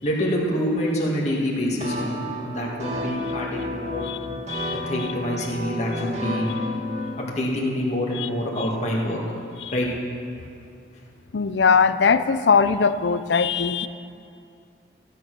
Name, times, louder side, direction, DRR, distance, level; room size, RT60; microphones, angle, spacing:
voice 1, 0.0-4.1 4.8-6.6 7.2-9.2 9.7-9.9, equal, 40° left, -3 dB, 1.9 m, -26 dB
sound 1, 1.8-7.1, left 1 dB, 40° right, 1.6 m, -31 dB
voice 2, 4.5-4.8 8.2-8.3 9.6-9.7 11.3-13.9, left 5 dB, 75° left, 12 dB, 0.5 m, -20 dB
15.0 x 9.2 x 6.1 m, 2.5 s
head